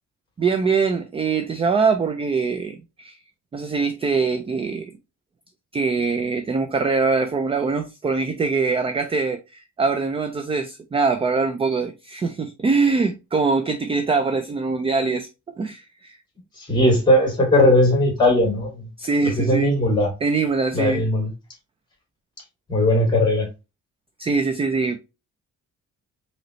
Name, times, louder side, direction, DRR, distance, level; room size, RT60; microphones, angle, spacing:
voice 1, 0.4-3.2 3.5-4.9 5.7-15.3 15.6-16.2 19.0-19.7 20.2-21.1 24.2-25.0, right 4 dB, 20° right, 0.4 m, -23 dB
voice 2, 16.6-18.9 19.4-20.1 20.7-21.3 22.7-23.5, left 1 dB, 15° left, 2.3 m, -18 dB
5.3 x 3.1 x 3.0 m
cardioid pair, 155°, 30 cm